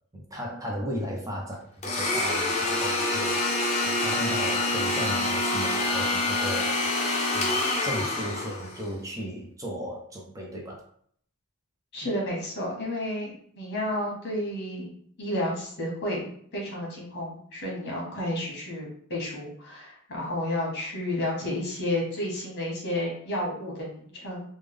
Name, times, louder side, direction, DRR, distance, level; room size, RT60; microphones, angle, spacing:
voice 1, 0.1-7.0 7.3-10.8, equal, 15° right, -1 dB, 0.5 m, -36 dB
Domestic sounds home sounds, 1.8-8.9, left 2 dB, 30° left, 0.7 m, -26 dB
voice 2, 11.9-14.9 15.2-24.4, left 1 dB, 50° left, -2 dB, 1.2 m, -31 dB
3.3 x 2.1 x 3.4 m, 0.63 s
head